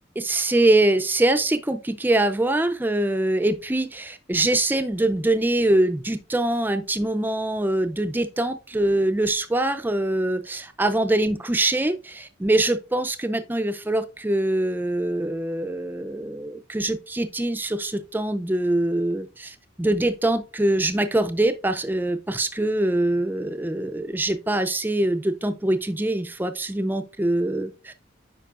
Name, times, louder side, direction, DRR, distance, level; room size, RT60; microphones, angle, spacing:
voice 1, 0.2-27.9, right 1 dB, 10° right, 0.4 m, -23 dB
9.1 x 5.4 x 2.4 m
head